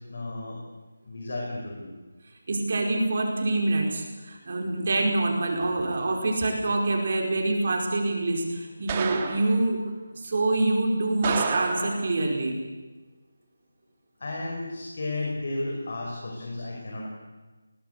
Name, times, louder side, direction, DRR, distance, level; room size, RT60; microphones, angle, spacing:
voice 1, 0.1-0.6 1.0-1.9 14.2-17.1, left 2 dB, 55° left, -1 dB, 5.5 m, -33 dB
voice 2, 2.5-9.8 10.2-12.6, right 2 dB, 50° right, 1 dB, 4.9 m, -26 dB
sound 1, 5.6-6.0 6.4-6.7 8.9-9.6 11.2-12.2, right 5 dB, 25° right, 2.0 m, -31 dB
20.5 x 18.5 x 8.4 m, 1.2 s
figure-of-eight pair, 165°, 0 cm